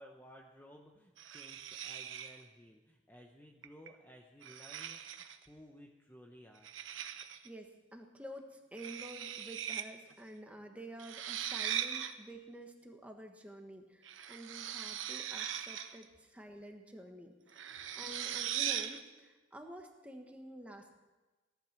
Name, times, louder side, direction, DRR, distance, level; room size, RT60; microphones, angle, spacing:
voice 1, 0.0-6.7 17.7-18.0, equal, 10° left, 1 dB, 0.8 m, -57 dB
sound 1, 1.2-2.4 3.6-3.9 4.4-5.5 6.6-7.5 8.8-9.9 10.1-10.2 11.0-12.1 14.0-16.0 17.5-19.0, right 10 dB, 80° right, 0.9 m, -40 dB
voice 2, 7.4-21.0, right 1 dB, 5° right, 3 dB, 1.5 m, -50 dB
17.5 x 12.0 x 6.1 m, 1.2 s
head